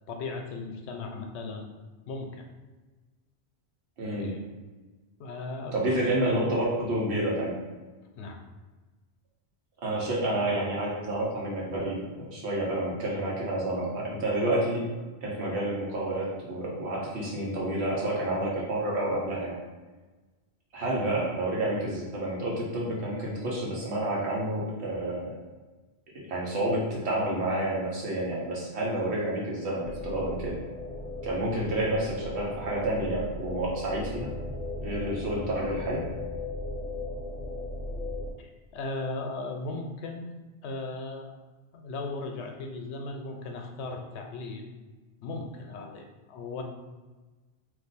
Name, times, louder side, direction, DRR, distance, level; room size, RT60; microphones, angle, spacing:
voice 1, 0.1-1.7 2.0-2.5 4.2-4.5 5.2-6.0 8.2-8.4 31.5-31.7 38.4-40.3 40.6-41.3 41.7-44.7 45.2-46.6, left 3 dB, 90° left, 3 dB, 0.8 m, -37 dB
voice 2, 4.0-4.4 5.7-7.6 9.8-14.9 15.2-19.6 20.7-25.3 26.1-30.6 31.2-34.3 34.8-36.1, right 1 dB, 90° right, -4 dB, 1.1 m, -29 dB
sound 1, 29.8-38.3, left 2 dB, 50° left, 0.6 m, -37 dB
2.5 x 2.3 x 4.0 m, 1.2 s
omnidirectional pair, 1.1 m